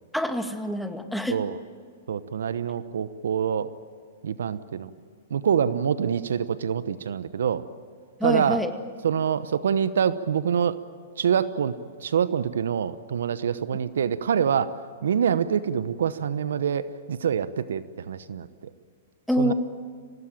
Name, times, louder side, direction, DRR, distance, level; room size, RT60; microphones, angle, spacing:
voice 1, 0.1-1.4 8.2-8.7 19.3-19.5, equal, ahead, 6 dB, 2.0 m, -26 dB
voice 2, 2.1-3.7 4.2-4.9 5.3-7.6 8.2-8.6 9.0-10.8 11.2-11.7 12.0-14.7 15.0-18.5 19.4-19.5, right 8 dB, 75° right, 15 dB, 0.9 m, -25 dB
25.0 x 18.5 x 9.0 m, 2.1 s
hypercardioid pair, 115°, 0 cm